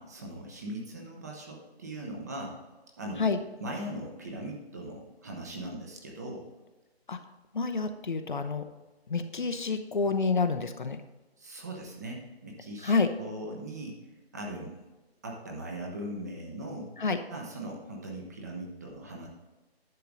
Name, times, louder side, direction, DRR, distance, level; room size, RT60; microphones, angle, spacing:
voice 1, 0.0-2.6 3.0-3.3 3.6-6.5 11.4-12.9 13.2-14.0 14.3-14.7 15.2-16.9 17.3-19.3, right 1 dB, 15° right, 0 dB, 0.8 m, -39 dB
voice 2, 7.5-8.6 9.1-11.0 12.8-13.1 17.0-17.2, left 4 dB, 50° left, 8 dB, 0.8 m, -28 dB
10.5 x 6.7 x 3.8 m, 1.1 s
figure-of-eight pair, 155°, 32 cm